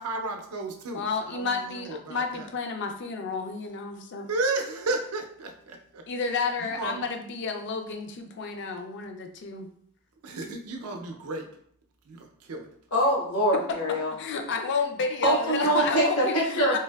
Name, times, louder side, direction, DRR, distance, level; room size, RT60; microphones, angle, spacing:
voice 1, 0.0-1.1 1.3-2.5 4.3-6.0 6.6-7.0 10.2-11.5 12.1-12.7 15.8-15.9, right 2 dB, 80° right, 4 dB, 0.5 m, -33 dB
voice 2, 0.9-4.3 6.1-9.7 14.2-16.8, left 4 dB, 55° left, 5 dB, 0.4 m, -31 dB
voice 3, 12.9-14.1 15.2-16.8, equal, 85° left, -3 dB, 1.0 m, -24 dB
3.3 x 2.6 x 2.2 m, 0.64 s
head